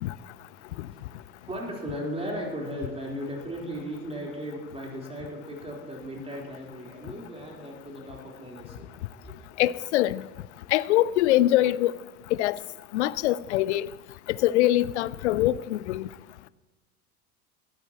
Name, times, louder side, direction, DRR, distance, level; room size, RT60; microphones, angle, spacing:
voice 1, 0.3-9.4, equal, 15° right, 4.1 m, -37 dB
voice 2, 9.6-10.2 10.7-11.9 12.4-12.6 12.9-13.9 14.3-16.1, left 15 dB, 55° left, 0.5 m, -23 dB
20.5 x 12.5 x 3.0 m
figure-of-eight pair, 80°, 44 cm